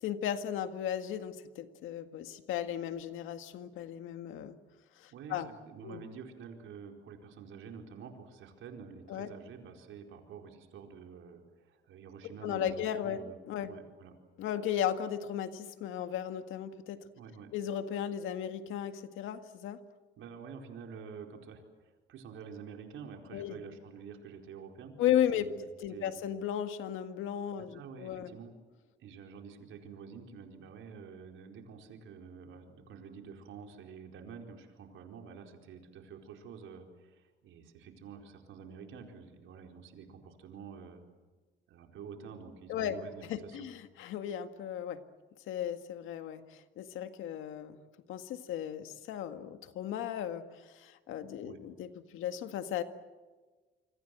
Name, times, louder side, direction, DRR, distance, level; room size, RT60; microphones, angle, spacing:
voice 1, 0.0-4.6 5.0-5.5 5.8-6.0 9.1-9.3 12.4-13.2 13.5-13.7 14.4-17.0 17.5-19.8 23.3-23.6 25.0-25.5 25.8-28.3 42.7-43.0 43.3-45.0 45.5-47.8 48.1-52.8, left 10 dB, 90° left, 8 dB, 1.9 m, -35 dB
voice 2, 5.1-13.4 13.7-14.1 17.2-17.5 20.2-25.0 25.3-26.2 27.7-28.5 29.0-41.0 41.7-43.7 51.4-51.7, right 6 dB, 80° right, 3 dB, 4.5 m, -48 dB
27.5 x 24.5 x 7.8 m, 1.3 s
cardioid pair, 90°, 20 cm